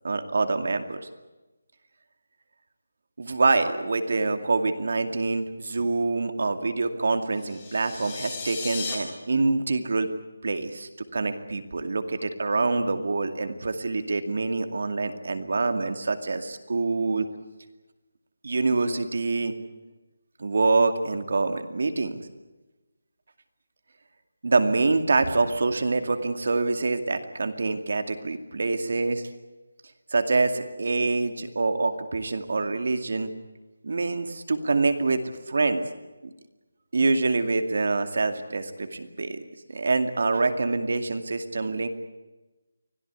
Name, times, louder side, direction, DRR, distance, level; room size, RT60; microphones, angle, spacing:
voice 1, 0.0-1.0 3.2-10.1 10.4-17.3 18.4-19.5 20.4-22.2 24.4-29.2 30.1-33.3 33.8-35.8 36.9-39.4 39.7-41.9, right 3 dB, 55° right, 8 dB, 2.4 m, -25 dB
sound 1, 7.4-8.9, left 4 dB, 20° left, 5.1 m, -35 dB
25.0 x 16.5 x 9.7 m, 1.1 s
figure-of-eight pair, 175°, 0 cm